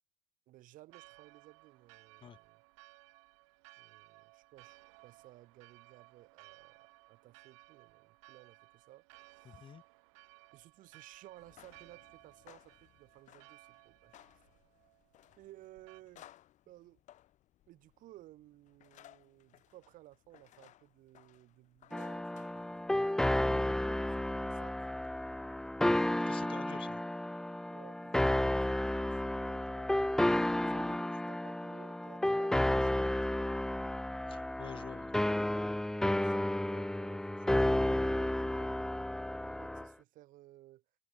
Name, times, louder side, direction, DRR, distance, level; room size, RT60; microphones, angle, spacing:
voice 1, 0.5-2.6 3.8-9.7 10.5-14.2 15.4-16.3 16.7-17.0 17.7-23.0 23.9-24.9 26.0-26.7 27.7-33.6 35.7-38.8 39.3-40.8, right 16 dB, 55° right, 5.0 m, -58 dB
Church bell, 0.9-16.0, right 28 dB, 75° right, 5.1 m, -60 dB
voice 2, 9.4-9.8 26.3-27.0 34.3-35.1, left 8 dB, 30° left, 1.3 m, -49 dB
sound 1, 11.3-23.2, left 13 dB, 50° left, 4.6 m, -62 dB
sound 2, 21.9-39.9, left 1 dB, 5° left, 0.5 m, -32 dB
supercardioid pair, 110°, 16 cm